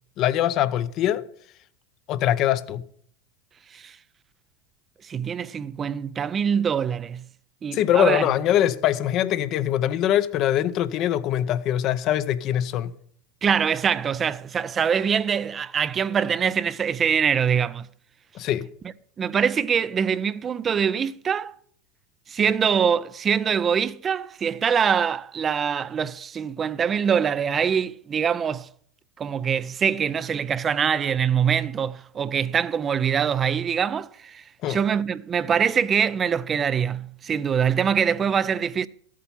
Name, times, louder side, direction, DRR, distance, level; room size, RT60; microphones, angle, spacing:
voice 1, 0.2-1.3 2.1-2.8 7.7-12.9 18.3-18.7 34.6-34.8, left 11 dB, 50° left, 0.7 m, -23 dB
voice 2, 5.0-7.2 7.6-8.3 13.4-17.9 19.2-21.5 22.3-28.7 29.2-38.9, right 7 dB, 30° right, 0.4 m, -24 dB
13.5 x 8.4 x 5.7 m
hypercardioid pair, 95°, 0 cm